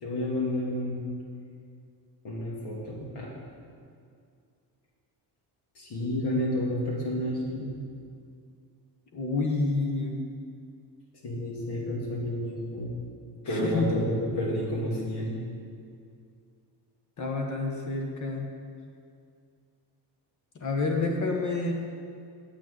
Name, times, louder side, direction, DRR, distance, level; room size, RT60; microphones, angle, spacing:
voice 1, 0.0-1.1 2.2-3.3 5.8-7.8 11.2-13.0 13.4-15.4, left 1 dB, 70° left, -3 dB, 2.7 m, -30 dB
voice 2, 9.1-10.2 13.4-13.9 17.2-18.5 20.5-21.7, left 3 dB, 45° left, 2 dB, 1.1 m, -28 dB
8.1 x 6.2 x 8.0 m, 2.3 s
cardioid pair, 145°, 41 cm